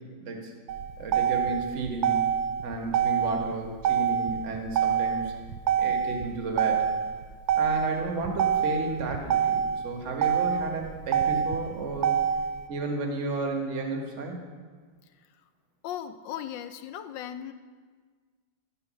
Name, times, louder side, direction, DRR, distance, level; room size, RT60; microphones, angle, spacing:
voice 1, 0.2-0.5 1.0-2.2 2.6-5.3 5.8-6.8 7.6-12.1 12.7-14.4, right 3 dB, 40° right, 2 dB, 1.4 m, -32 dB
Motor vehicle (road), 0.7-12.7, right 8 dB, 80° right, 1.3 m, -27 dB
voice 2, 15.8-17.5, left 10 dB, 75° left, 9 dB, 1.2 m, -37 dB
11.5 x 5.8 x 6.2 m, 1.5 s
omnidirectional pair, 2.2 m